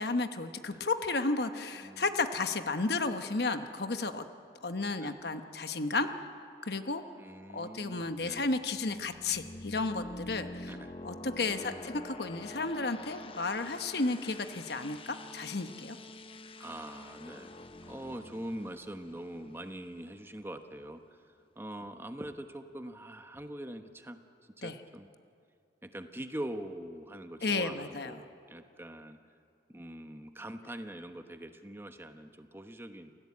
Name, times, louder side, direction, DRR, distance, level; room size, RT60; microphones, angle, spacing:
voice 1, 0.0-4.3 4.6-6.1 6.6-7.0 7.5-10.7 11.0-16.0 24.6-24.7 27.4-28.2, left 3 dB, 60° left, 8 dB, 1.1 m, -33 dB
voice 2, 7.2-8.5 10.7-10.9 11.5-12.0 16.6-21.0 21.6-24.2 24.6-25.1 25.8-29.2 29.7-33.1, right 1 dB, 15° right, 7 dB, 1.1 m, -43 dB
sound 1, 8.0-20.6, left 2 dB, 30° left, 0.9 m, -47 dB
28.5 x 16.5 x 8.6 m, 2.5 s
head